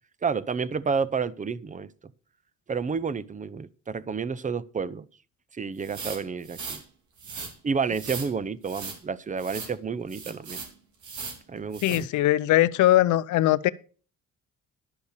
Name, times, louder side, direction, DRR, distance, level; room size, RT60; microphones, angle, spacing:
voice 1, 0.2-1.9 2.7-5.1 5.5-6.8 7.6-10.6 11.5-12.1, right 5 dB, 25° right, 0.7 m, -30 dB
sound 1, 5.8-6.8 7.2-7.5 7.9-8.3 8.6-9.0 9.4-9.7 10.1-10.7 11.0-11.4 11.7-12.0, right 5 dB, 75° right, 3.2 m, -38 dB
voice 2, 11.8-13.7, left 14 dB, 80° left, 0.6 m, -21 dB
12.0 x 5.4 x 6.7 m
cardioid pair, 90°, 30 cm